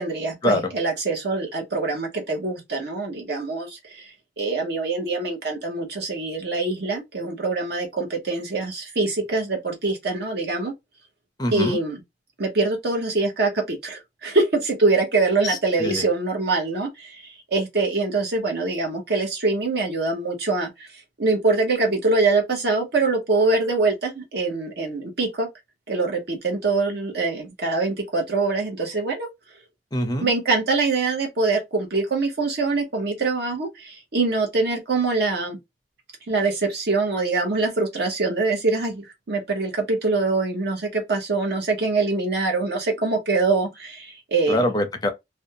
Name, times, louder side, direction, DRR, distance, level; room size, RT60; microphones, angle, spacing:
voice 1, 0.0-10.7 11.5-12.0 12.4-20.9 21.2-25.5 25.9-29.3 30.2-35.6 36.3-44.6, right 3 dB, 60° right, 1.0 m, -24 dB
voice 2, 11.4-11.8 15.4-16.1 29.9-30.3 44.5-45.1, left 1 dB, 20° left, 0.5 m, -24 dB
2.6 x 2.2 x 2.6 m
head